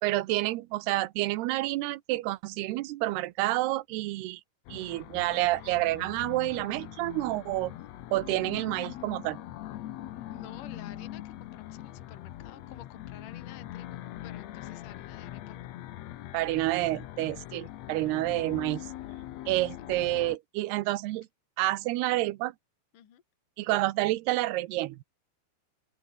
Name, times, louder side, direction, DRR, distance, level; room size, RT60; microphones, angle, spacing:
voice 1, 0.0-4.4 4.7-7.7 8.1-9.4 16.3-18.9 19.5-21.3 21.6-22.5 23.6-25.0, right 18 dB, 90° right, 2.9 m, -29 dB
sound 1, 4.6-20.4, left 13 dB, 85° left, 1.5 m, -42 dB
voice 2, 10.3-15.6 22.9-23.2, left 10 dB, 60° left, 3.7 m, -50 dB
open air
omnidirectional pair, 4.5 m